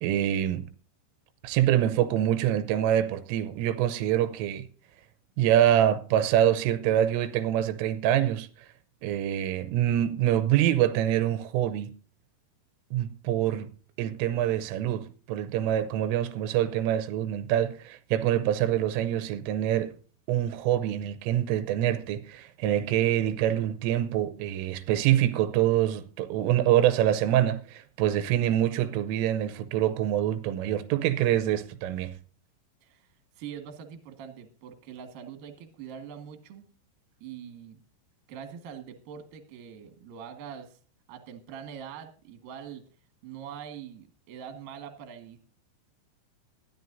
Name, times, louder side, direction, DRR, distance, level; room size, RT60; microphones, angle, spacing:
voice 1, 0.0-0.7 1.4-4.6 5.4-8.5 9.0-11.9 12.9-13.7 14.0-19.9 20.3-32.1, right 11 dB, 85° right, 3.4 m, -25 dB
voice 2, 33.4-36.7 37.2-37.8 38.3-40.8 41.1-42.8 43.2-45.4, right 8 dB, 60° right, 2.9 m, -43 dB
20.0 x 13.0 x 2.6 m
omnidirectional pair, 5.6 m